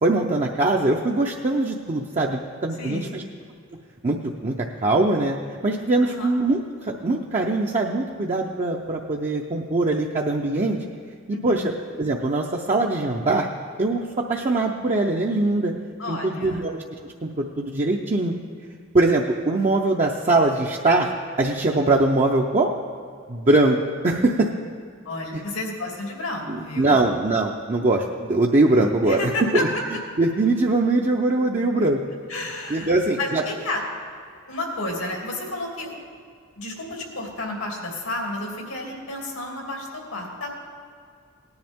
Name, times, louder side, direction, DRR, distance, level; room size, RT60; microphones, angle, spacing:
voice 1, 0.0-3.2 4.0-4.2 4.4-5.4 5.6-10.8 11.3-11.6 12.0-13.5 13.8-14.0 14.3-15.7 16.1-16.8 17.2-18.3 18.9-21.1 21.4-22.7 23.3-23.8 24.0-24.5 26.5-29.7 30.2-32.0 32.7-33.4, right 2 dB, 35° right, -1 dB, 0.6 m, -22 dB
voice 2, 2.8-3.3 6.0-6.3 11.3-11.7 16.0-16.7 25.0-27.0 29.0-29.6 32.3-33.8 34.5-36.0 36.6-40.6, left 2 dB, 90° left, 0 dB, 2.7 m, -31 dB
18.0 x 10.5 x 3.6 m, 2.1 s
head